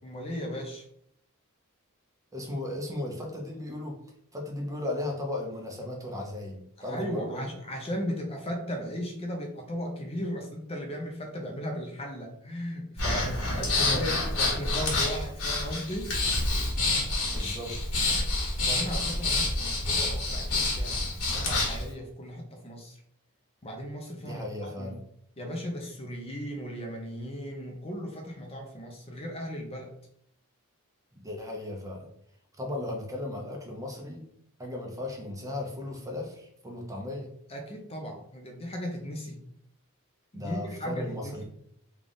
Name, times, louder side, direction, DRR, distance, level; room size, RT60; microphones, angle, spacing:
voice 1, 0.0-0.8 6.8-16.1 18.3-21.0 21.3-23.0 23.6-25.0 25.4-29.9 37.5-39.4 40.3-41.4, equal, 25° left, 2 dB, 0.6 m, -36 dB
voice 2, 2.3-4.0 4.3-7.5 13.7-14.1 17.3-18.0 24.2-25.0 31.2-32.1 32.6-34.3 34.6-37.3 40.3-41.4, left 1 dB, 15° right, 1 dB, 0.7 m, -36 dB
Breathing, 13.0-21.8, left 2 dB, 90° left, 1.3 m, -28 dB
3.4 x 2.4 x 3.8 m, 0.70 s
head